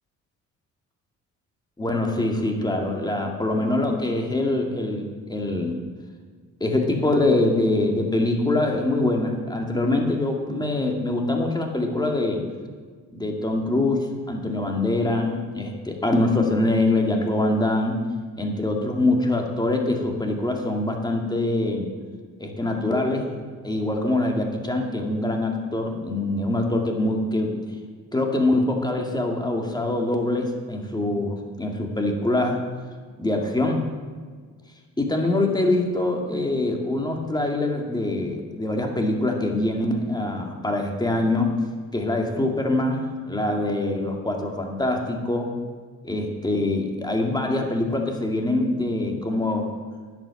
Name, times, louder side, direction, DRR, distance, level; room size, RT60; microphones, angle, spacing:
voice 1, 1.8-5.8 6.6-12.4 13.1-18.0 18.4-21.9 22.4-23.4 23.6-27.6 28.1-32.6 33.2-33.9 35.0-41.5 41.9-45.5 46.0-49.7, left 2 dB, 15° left, 2 dB, 2.2 m, -24 dB
10.5 x 8.0 x 7.2 m, 1.6 s
cardioid pair, 90°, 30 cm